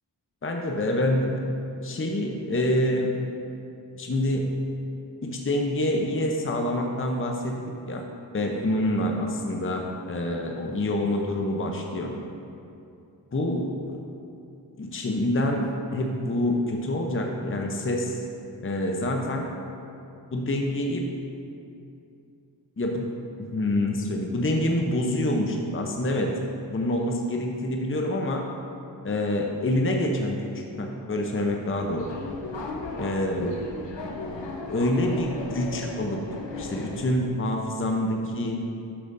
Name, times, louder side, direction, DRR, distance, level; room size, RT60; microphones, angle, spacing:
voice 1, 0.4-1.4 1.8-3.2 3.9-4.5 5.2-8.0 8.3-12.1 13.3-14.0 14.8-18.2 18.6-19.5 20.3-21.1 22.8-23.1 23.4-26.3 26.7-28.4 29.0-32.2 33.0-33.5 34.7-36.2 36.6-38.6, left 1 dB, 30° left, 1 dB, 0.7 m, -26 dB
Subway metro underground, 31.6-37.3, left 2 dB, 75° left, 0.9 m, -36 dB
10.0 x 6.8 x 2.6 m, 2.6 s
cardioid pair, 40°, 44 cm